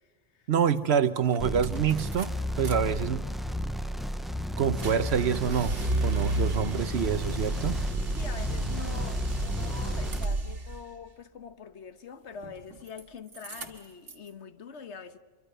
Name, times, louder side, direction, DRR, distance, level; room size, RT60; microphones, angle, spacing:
voice 1, 0.5-3.3 4.6-5.8 6.0-7.8, right 7 dB, 65° right, 1.1 m, -27 dB
sound 1, 0.8-0.9 1.2-2.7 3.1-10.8 12.3-13.0 13.3-14.3, right 2 dB, 85° right, 2.1 m, -34 dB
sound 2, 1.4-10.3, left 1 dB, ahead, 0.5 m, -33 dB
voice 2, 8.1-15.2, left 6 dB, 75° left, 1.4 m, -44 dB
26.5 x 24.0 x 6.8 m
omnidirectional pair, 1.2 m